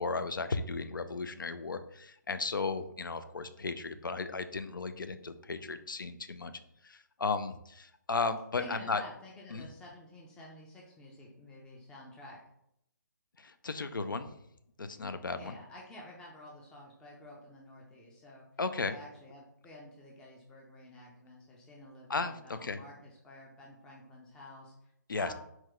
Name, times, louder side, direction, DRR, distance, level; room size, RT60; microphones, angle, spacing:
voice 1, 0.0-6.5 6.8-9.0 9.5-9.7 13.4-14.4 14.8-15.6 18.6-18.9 22.1-22.8 25.1-25.3, left 4 dB, 85° left, 10 dB, 0.4 m, -35 dB
voice 2, 8.6-12.4 15.3-18.5 18.9-25.3, left 1 dB, 5° left, -3 dB, 0.4 m, -51 dB
4.4 x 2.2 x 3.7 m, 0.76 s
figure-of-eight pair, 145°, 11 cm